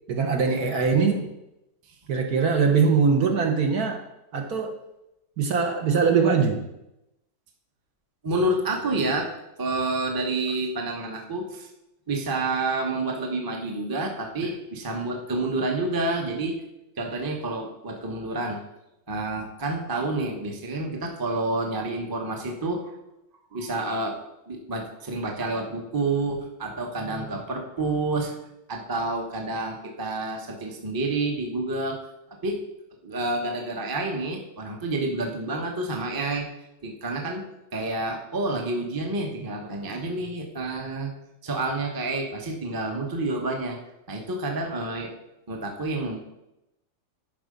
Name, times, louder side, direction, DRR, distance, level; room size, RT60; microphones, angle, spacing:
voice 1, 0.1-1.2 2.1-4.0 4.3-4.7 5.4-6.6, right 5 dB, 60° right, 3 dB, 1.4 m, -22 dB
voice 2, 8.2-9.3 9.6-11.7 12.1-16.5 17.0-18.6 19.1-22.9 23.5-24.2 24.5-28.3 28.7-32.0 32.4-32.6 33.0-36.5 36.8-37.4 37.7-41.1 41.4-43.8 44.1-45.1 45.5-46.2, right 2 dB, 15° right, 1 dB, 0.8 m, -29 dB
11.5 x 4.9 x 5.2 m, 0.89 s
omnidirectional pair, 2.1 m